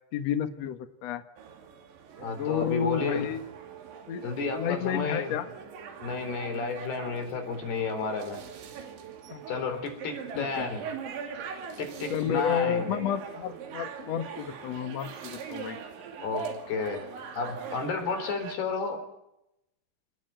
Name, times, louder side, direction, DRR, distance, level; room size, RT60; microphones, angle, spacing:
voice 1, 0.1-1.2 2.4-3.4 4.1-4.2 4.5-5.5 9.3-9.4 9.7-9.8 10.3-10.7 12.1-15.8, left 8 dB, 75° left, 10 dB, 1.5 m, -31 dB
sound 1, 1.4-18.6, right 7 dB, 85° right, 5.0 m, -42 dB
voice 2, 2.2-3.3 4.2-5.4 6.0-8.4 9.5-10.8 11.8-12.9 16.2-17.1 17.3-19.0, left 4 dB, 60° left, 7 dB, 5.7 m, -32 dB
28.0 x 20.0 x 9.1 m, 0.87 s
omnidirectional pair, 5.2 m